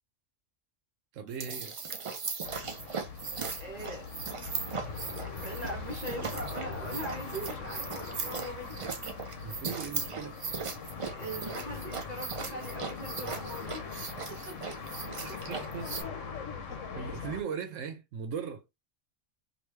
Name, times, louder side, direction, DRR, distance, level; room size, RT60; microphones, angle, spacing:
voice 1, 1.1-1.7 9.4-10.4 15.2-15.9 16.9-18.6, right 7 dB, 80° right, 1.0 m, -38 dB
sound 1, 1.3-16.0, right 5 dB, 60° right, 0.3 m, -38 dB
sound 2, 2.4-17.4, left 5 dB, 85° left, 1.0 m, -41 dB
voice 2, 3.6-4.1 5.3-8.9 11.1-13.8 14.3-14.8 16.9-17.3, right 1 dB, 40° right, 0.9 m, -41 dB
3.1 x 2.6 x 3.3 m
omnidirectional pair, 1.3 m